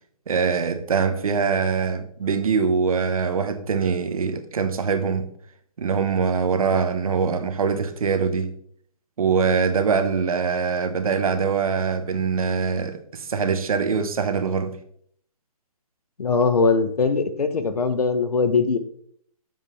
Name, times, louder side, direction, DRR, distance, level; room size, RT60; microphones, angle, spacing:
voice 1, 0.3-5.3 5.8-8.5 9.2-14.8, right 5 dB, 70° right, 1.1 m, -23 dB
voice 2, 16.2-18.8, left 4 dB, 85° left, 1.0 m, -21 dB
7.6 x 7.3 x 3.3 m
hypercardioid pair, 155°, 19 cm